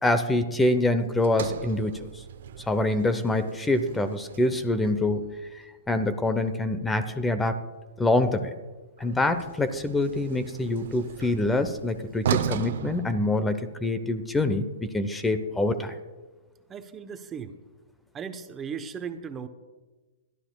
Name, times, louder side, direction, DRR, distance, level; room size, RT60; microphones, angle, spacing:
voice 1, 0.0-2.1 2.7-7.6 8.0-8.5 9.0-14.7 14.9-16.0, left 2 dB, 10° left, 11 dB, 0.8 m, -25 dB
Sliding door, 1.2-5.5 9.0-13.9, right 9 dB, 65° right, 0.7 m, -36 dB
voice 2, 16.7-17.6 18.1-19.5, right 6 dB, 20° right, 9 dB, 0.9 m, -37 dB
22.0 x 13.0 x 2.3 m, 1.2 s
hypercardioid pair, 125°, 0 cm